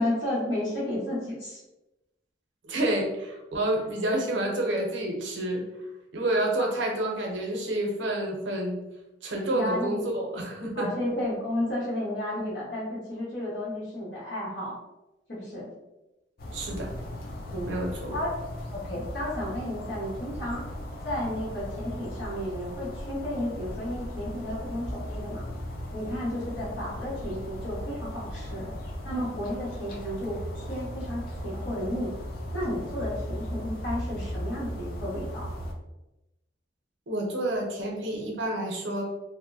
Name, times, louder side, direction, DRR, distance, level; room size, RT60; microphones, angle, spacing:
voice 1, 0.0-1.6 6.6-6.7 9.5-10.1 10.8-14.8 15.3-15.7 17.5-17.7 18.1-18.3 18.7-20.7 21.0-25.4 25.9-28.7 29.0-32.1 32.5-35.5, left 1 dB, 75° left, -7 dB, 1.2 m, -32 dB
voice 2, 2.6-5.6 6.1-8.8 9.2-10.9 16.5-16.9 17.6-18.2 37.1-39.0, right 1 dB, 85° right, 0 dB, 0.6 m, -29 dB
sound 1, 16.4-35.7, equal, 50° left, 0.5 m, -37 dB
2.6 x 2.0 x 2.7 m, 0.98 s
head